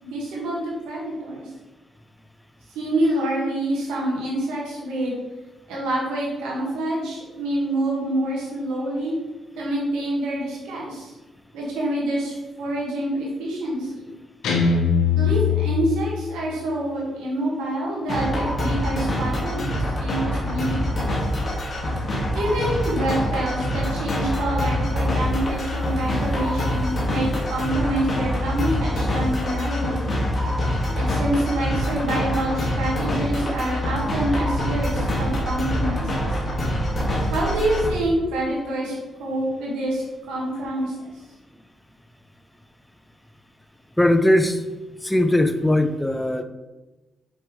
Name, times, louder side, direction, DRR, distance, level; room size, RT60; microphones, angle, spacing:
voice 1, 0.0-1.5 2.7-5.2 5.7-9.2 9.6-11.1 11.5-14.1 15.2-21.2 22.3-30.1 30.9-36.4 37.3-38.9 39.2-41.1, right 1 dB, 90° right, -3 dB, 1.9 m, -26 dB
Guitar, 14.4-16.5, left 6 dB, 80° left, 1.0 m, -21 dB
sound 1, 18.1-37.9, equal, 45° left, 2.0 m, -25 dB
voice 2, 44.0-44.6 45.0-46.4, left 1 dB, 5° left, 7 dB, 0.7 m, -19 dB
6.3 x 4.9 x 3.2 m, 1.1 s
supercardioid pair, 55°, 0 cm